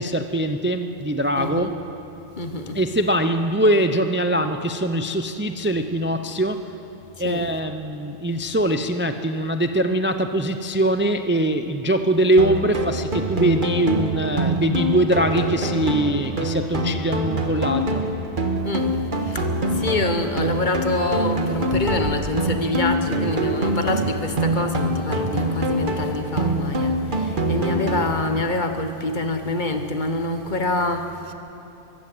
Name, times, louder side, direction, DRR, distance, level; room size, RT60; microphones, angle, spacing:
voice 1, 0.0-1.7 2.7-6.7 7.2-18.0, right 1 dB, 15° right, 8 dB, 0.5 m, -22 dB
voice 2, 1.4-1.8 2.4-2.8 7.2-7.5 18.6-18.9 19.2-31.3, left 2 dB, 45° left, 7 dB, 1.4 m, -26 dB
sound 1, 12.4-28.4, right 1 dB, 50° right, 1.7 m, -25 dB
23.5 x 15.5 x 7.9 m, 2.9 s
omnidirectional pair, 1.1 m